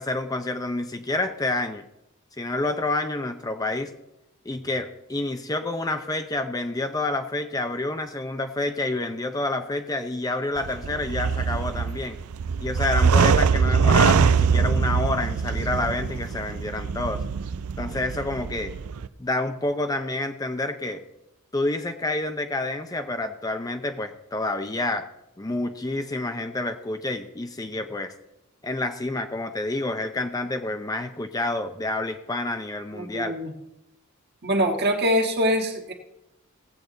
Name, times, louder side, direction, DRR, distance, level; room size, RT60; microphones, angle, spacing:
voice 1, 0.0-1.9 2.4-3.9 4.4-12.2 12.6-17.2 17.8-18.7 19.2-21.0 21.5-25.1 25.4-28.1 28.6-33.4, left 2 dB, 15° left, 7 dB, 0.6 m, -28 dB
sound 1, 10.6-19.1, right 6 dB, 80° right, 0.5 m, -23 dB
voice 2, 32.9-33.5 34.4-35.9, equal, 50° right, 2 dB, 1.7 m, -24 dB
17.5 x 8.0 x 3.9 m, 0.87 s
head